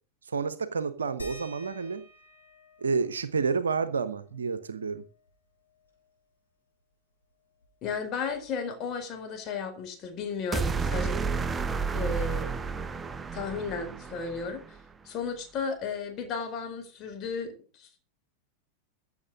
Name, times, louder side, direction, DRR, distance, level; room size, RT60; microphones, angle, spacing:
voice 1, 0.3-2.1 2.8-5.0, right 5 dB, 70° right, 1.0 m, -29 dB
sound 1, 1.2-6.3 6.7-6.8 7.1-8.9 10.1-10.2 10.9-11.0, equal, 80° left, 5.8 m, -52 dB
voice 2, 7.8-11.2 11.9-12.5 13.3-14.8 15.0-17.9, left 5 dB, 35° left, 4.5 m, -34 dB
sound 2, 10.5-14.8, right 5 dB, 15° right, 0.7 m, -31 dB
15.5 x 7.2 x 6.3 m
figure-of-eight pair, 90°, 0 cm